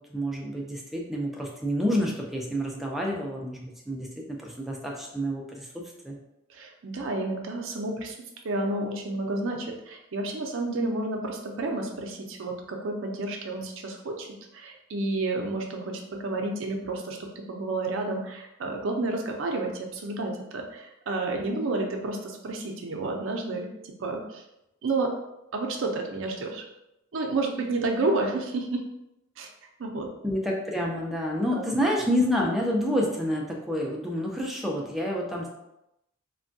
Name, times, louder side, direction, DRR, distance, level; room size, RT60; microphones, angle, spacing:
voice 1, 0.0-6.2 30.2-35.5, equal, ahead, -2 dB, 0.4 m, -28 dB
voice 2, 6.5-8.2 8.4-24.4 24.8-25.1 25.5-26.6 27.1-28.8 29.4-29.5 29.8-30.1 31.5-31.6, right 2 dB, 65° right, 2 dB, 0.5 m, -30 dB
3.3 x 2.2 x 2.6 m, 0.87 s
head